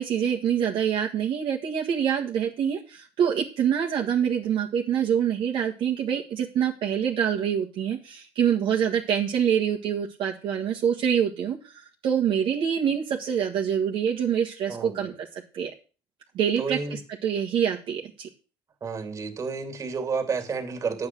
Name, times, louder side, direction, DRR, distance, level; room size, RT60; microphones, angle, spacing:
voice 1, 0.0-15.3 15.5-15.7 16.3-18.3, right 8 dB, 65° right, -1 dB, 1.7 m, -26 dB
voice 2, 14.7-15.1 16.6-17.0 18.8-21.1, right 5 dB, 35° right, 6 dB, 2.8 m, -31 dB
10.0 x 8.6 x 6.2 m, 0.35 s
cardioid pair, 110°, 10 cm